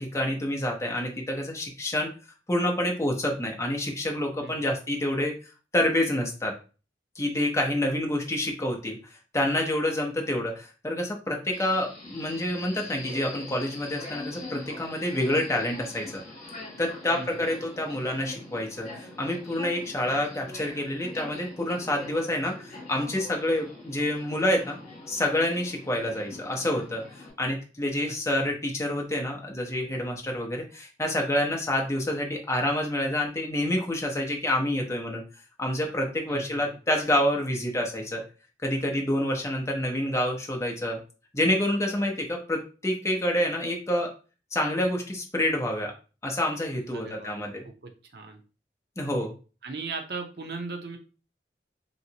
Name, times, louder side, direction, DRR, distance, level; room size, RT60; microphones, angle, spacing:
voice 1, 0.0-2.1 2.5-5.3 5.7-6.5 7.2-9.0 9.3-16.2 16.8-24.8 25.1-27.0 27.4-35.2 35.6-38.2 38.6-41.0 41.3-44.1 44.5-45.9 46.2-47.6 49.0-49.3, left 1 dB, 15° left, 1 dB, 0.7 m, -28 dB
voice 2, 4.4-4.7 17.1-17.7 28.1-28.5 36.3-36.8 46.9-48.4 49.6-51.0, right 4 dB, 60° right, 4 dB, 0.6 m, -39 dB
Subway metro underground, 11.5-27.3, left 2 dB, 35° left, 1.7 m, -43 dB
3.1 x 2.7 x 2.8 m, 0.35 s
head